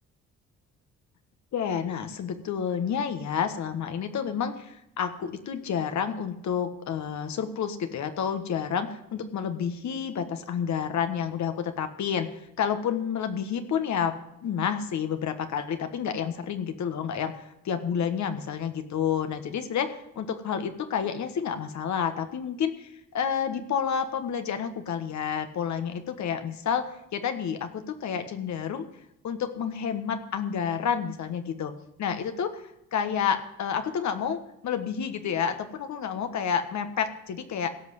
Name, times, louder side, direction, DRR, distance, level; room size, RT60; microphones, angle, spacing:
voice 1, 1.5-14.2 14.4-28.8 29.2-31.7 32.0-32.6 32.9-37.7, left 7 dB, 65° left, 8 dB, 1.5 m, -30 dB
16.5 x 5.7 x 7.9 m, 0.81 s
cardioid pair, 90°, 30 cm